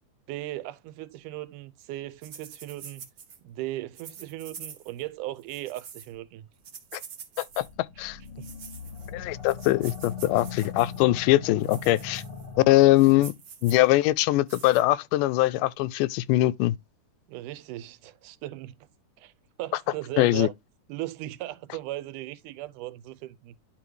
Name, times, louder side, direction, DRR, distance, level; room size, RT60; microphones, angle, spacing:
voice 1, 0.3-3.1 3.4-6.4 8.0-8.1 8.4-8.5 17.3-18.8 19.2-19.3 19.6-20.5 20.9-23.6, right 15 dB, 85° right, 2.1 m, -37 dB
sound 1, 2.2-3.4 3.9-5.0 5.4-6.1 6.6-7.7 8.2-9.1 9.4-11.0 11.6-12.5 12.8-13.8 14.5-14.8, right 7 dB, 55° right, 1.2 m, -45 dB
sound 2, 7.6-13.2, left 6 dB, 40° left, 1.1 m, -40 dB
voice 2, 9.1-12.2 12.6-13.3 13.6-16.8 20.2-20.5, left 17 dB, 85° left, 2.1 m, -22 dB
11.0 x 3.8 x 3.1 m
omnidirectional pair, 3.7 m